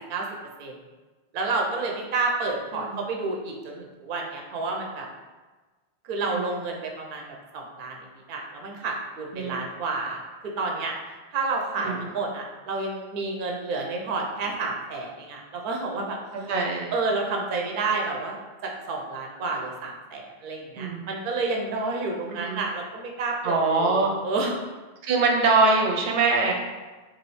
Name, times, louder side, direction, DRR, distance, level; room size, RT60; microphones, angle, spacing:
voice 1, 1.3-5.1 6.0-7.2 7.5-8.0 8.3-10.9 11.3-16.2 16.9-24.5, right 3 dB, 60° right, 1 dB, 0.6 m, -30 dB
voice 2, 6.2-6.6 9.3-9.7 11.8-12.1 16.5-16.9 20.8-21.1 22.3-22.6 23.4-24.1 25.0-26.5, right 3 dB, 90° right, 1 dB, 0.9 m, -23 dB
3.0 x 2.5 x 3.0 m, 1.3 s
omnidirectional pair, 1.1 m